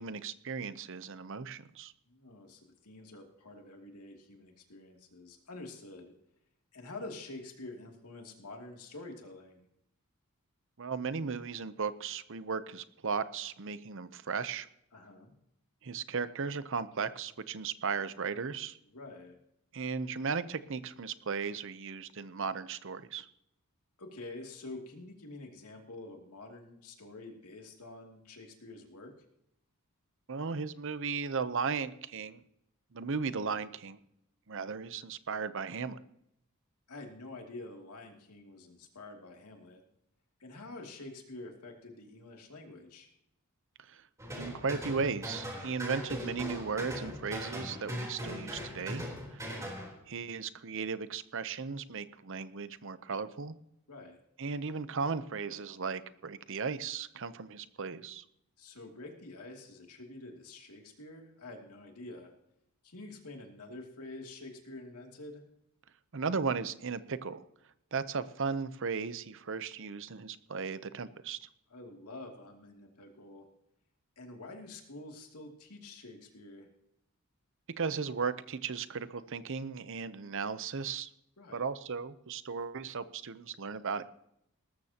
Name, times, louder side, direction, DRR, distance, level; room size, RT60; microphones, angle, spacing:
voice 1, 0.0-1.9 10.8-14.7 15.8-18.8 19.7-23.3 30.3-32.4 32.9-34.0 34.5-36.0 43.9-44.0 44.4-49.0 49.3-49.4 50.1-53.6 54.4-58.2 66.1-67.4 67.9-71.4 77.8-81.1 81.5-84.0, right 5 dB, 60° right, 13 dB, 0.7 m, -36 dB
voice 2, 2.1-6.1 6.7-9.6 14.9-15.3 18.9-19.4 24.0-29.1 36.9-39.8 40.4-43.1 49.4-49.8 53.9-54.2 58.6-62.3 62.8-65.4 71.7-73.5 74.2-76.7 81.4-81.7, left 2 dB, 90° left, 2 dB, 2.7 m, -47 dB
sound 1, 44.2-49.9, equal, 15° right, 3.8 m, -40 dB
19.5 x 13.5 x 2.9 m, 0.78 s
head